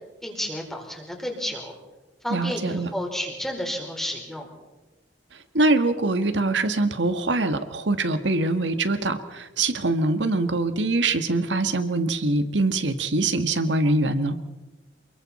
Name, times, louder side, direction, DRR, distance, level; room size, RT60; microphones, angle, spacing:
voice 1, 0.2-1.7 2.2-4.5, equal, ahead, 0 dB, 4.3 m, -31 dB
voice 2, 2.3-2.9 5.5-14.4, right 2 dB, 75° right, 9 dB, 1.6 m, -23 dB
28.5 x 22.0 x 4.3 m, 1.1 s
head